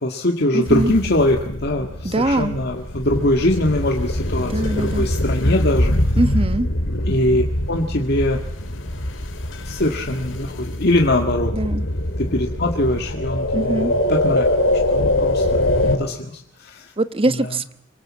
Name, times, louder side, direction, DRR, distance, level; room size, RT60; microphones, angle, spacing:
voice 1, 0.0-4.5 4.8-5.9 7.1-8.4 9.6-11.5 12.2-14.5 14.9-16.9 17.3-17.5, left 1 dB, 55° left, 2 dB, 1.9 m, -22 dB
voice 2, 0.5-0.9 2.0-2.6 4.5-5.1 6.2-6.7 11.5-11.9 13.5-13.9 17.0-17.8, right 1 dB, 30° right, 12 dB, 1.1 m, -22 dB
sound 1, 0.7-16.0, left 1 dB, 85° left, 2.9 m, -23 dB
26.5 x 24.0 x 7.5 m, 0.71 s
head